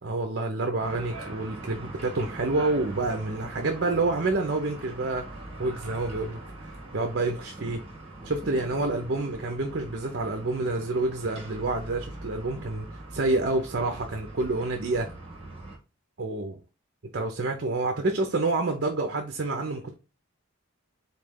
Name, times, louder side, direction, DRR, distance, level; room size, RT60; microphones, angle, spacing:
voice 1, 0.0-5.3 5.6-6.4 6.9-7.8 8.2-15.1 16.2-16.6 17.1-19.9, right 2 dB, 50° right, 0.6 m, -28 dB
sound 1, 0.8-15.8, right 2 dB, 25° right, 1.3 m, -42 dB
4.1 x 3.2 x 3.6 m
head